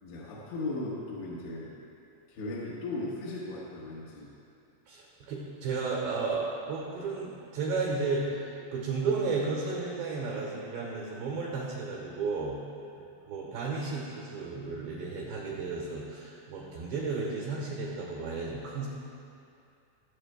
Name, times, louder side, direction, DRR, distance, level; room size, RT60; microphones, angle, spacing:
voice 1, 0.0-1.7 2.3-4.3 13.0-13.1, left 2 dB, 70° left, -7 dB, 3.2 m, -37 dB
voice 2, 4.9-12.6 13.3-18.9, right 4 dB, 75° right, -4 dB, 2.8 m, -33 dB
22.0 x 7.8 x 2.2 m, 2.5 s
omnidirectional pair, 6.0 m